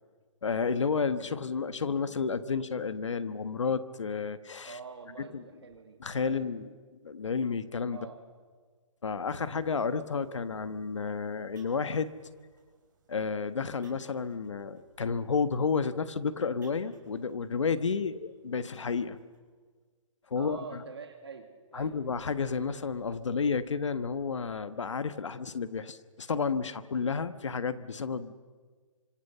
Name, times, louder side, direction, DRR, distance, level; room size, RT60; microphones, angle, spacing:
voice 1, 0.4-4.8 5.3-5.4 6.0-6.7 7.0-8.0 9.0-12.1 13.1-19.2 20.3-20.8 21.7-28.3, left 5 dB, 70° left, 12 dB, 1.4 m, -31 dB
voice 2, 4.7-6.4 7.9-8.2 20.4-21.9, right 5 dB, 55° right, 5 dB, 2.5 m, -45 dB
sound 1, 9.2-19.4, right 4 dB, 35° right, 5.2 m, -64 dB
29.0 x 26.0 x 6.9 m, 1.5 s
hypercardioid pair, 180°, 16 cm